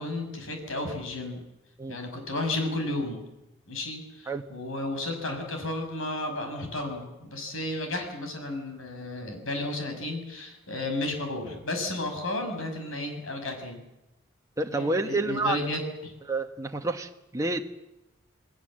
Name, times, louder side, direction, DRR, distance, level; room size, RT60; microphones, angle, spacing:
voice 1, 0.0-1.4 1.9-3.2 3.7-13.8 14.6-16.1, left 2 dB, 70° left, 5 dB, 6.4 m, -33 dB
voice 2, 14.6-15.6 16.3-17.6, right 2 dB, 15° right, 4 dB, 1.2 m, -29 dB
28.5 x 19.5 x 7.6 m, 0.96 s
head